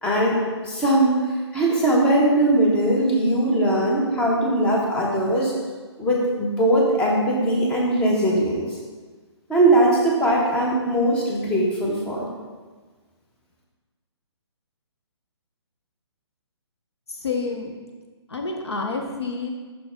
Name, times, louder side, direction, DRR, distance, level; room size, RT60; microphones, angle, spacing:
voice 1, 0.0-1.2 1.5-5.5 6.0-8.8 9.5-12.2, right 1 dB, 5° left, -4 dB, 0.8 m, -20 dB
voice 2, 17.1-17.7 18.3-19.5, left 4 dB, 65° left, 2 dB, 0.7 m, -28 dB
5.9 x 3.9 x 4.9 m, 1.4 s
figure-of-eight pair, 135°, 15 cm